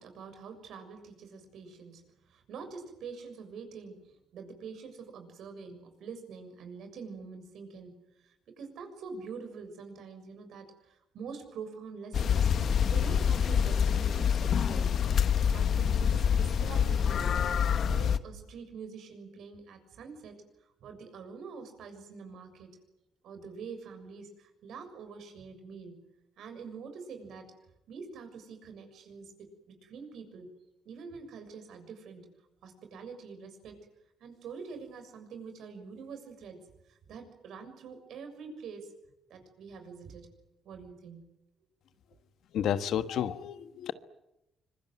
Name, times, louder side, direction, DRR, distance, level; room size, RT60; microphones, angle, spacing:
voice 1, 0.0-2.0 2.3-7.9 8.2-12.5 12.9-15.0 15.5-17.3 17.9-20.3 20.8-22.8 23.2-26.0 26.4-27.5 27.9-29.3 29.7-30.5 30.9-32.3 32.6-33.8 34.2-38.9 39.3-40.3 40.7-41.2, right 5 dB, 75° right, 6.8 m, -45 dB
sound 1, 12.1-18.2, left 7 dB, 60° left, 1.2 m, -26 dB
voice 2, 42.5-43.9, left 9 dB, 75° left, 1.3 m, -31 dB
25.5 x 22.5 x 9.4 m
cardioid pair, 90°, 0 cm